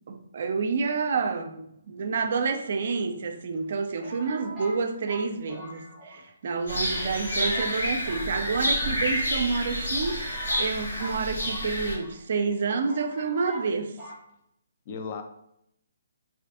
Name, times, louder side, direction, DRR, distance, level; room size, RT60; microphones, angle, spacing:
voice 1, 0.1-14.0, right 4 dB, 55° right, 0.3 m, -29 dB
sound 1, 2.6-3.3 4.0-6.3 6.6-6.7 7.0-7.8 8.0-9.0 9.6-9.7 9.9-12.2 12.5-12.6 12.9-13.7 14.0-14.2, right 1 dB, 5° left, 0.6 m, -42 dB
sound 2, 6.7-11.9, equal, 90° left, 1.0 m, -29 dB
voice 2, 6.7-7.2 14.9-15.2, left 5 dB, 40° left, 0.3 m, -38 dB
2.5 x 2.4 x 2.3 m
hypercardioid pair, 145°, 0 cm